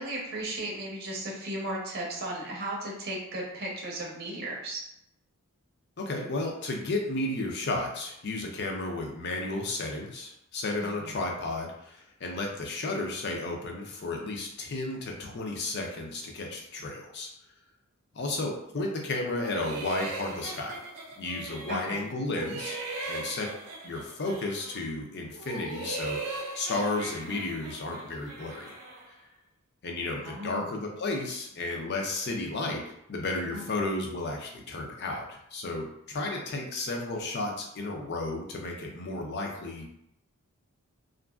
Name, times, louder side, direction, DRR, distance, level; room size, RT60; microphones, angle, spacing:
voice 1, 0.0-4.8 10.8-11.1 21.7-22.1 30.2-30.8 33.5-33.6, right 1 dB, 45° right, -3 dB, 0.7 m, -35 dB
voice 2, 6.0-17.3 18.1-20.8 21.2-23.5 23.8-28.8 29.8-39.9, left 2 dB, 50° left, 1 dB, 0.5 m, -33 dB
sound 1, 19.4-22.0 22.3-24.9 25.3-29.1, right 2 dB, 90° right, 0.5 m, -39 dB
2.8 x 2.5 x 2.3 m, 0.78 s
head